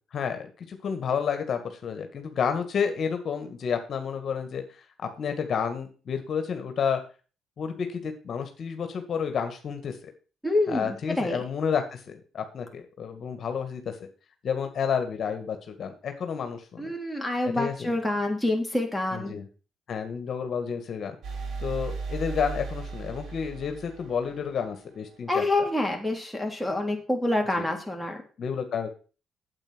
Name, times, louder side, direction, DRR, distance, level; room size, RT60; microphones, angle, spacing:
voice 1, 0.1-4.8 5.2-7.0 7.6-10.1 10.7-14.0 14.4-16.9 17.5-17.9 19.1-19.5 19.9-21.2 21.6-25.4 27.6-27.7 28.4-28.9, left 7 dB, 55° left, 6 dB, 1.9 m, -30 dB
voice 2, 10.4-11.4 16.8-19.4 25.3-28.2, left 2 dB, ahead, 0 dB, 3.4 m, -27 dB
sound 1, 21.2-25.0, right 4 dB, 65° right, 2.6 m, -36 dB
8.9 x 8.3 x 6.2 m, 0.36 s
cardioid pair, 90°, 0 cm